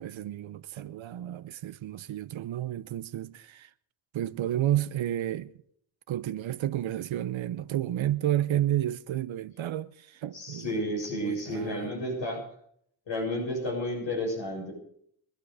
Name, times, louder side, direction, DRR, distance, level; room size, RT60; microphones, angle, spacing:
voice 1, 0.0-3.7 4.1-5.5 6.1-10.7 11.1-11.9, right 12 dB, 75° right, 0.9 m, -31 dB
voice 2, 10.3-12.4 13.1-14.7, equal, 70° left, 7.4 m, -31 dB
24.0 x 10.5 x 5.0 m
cardioid pair, 55°, 47 cm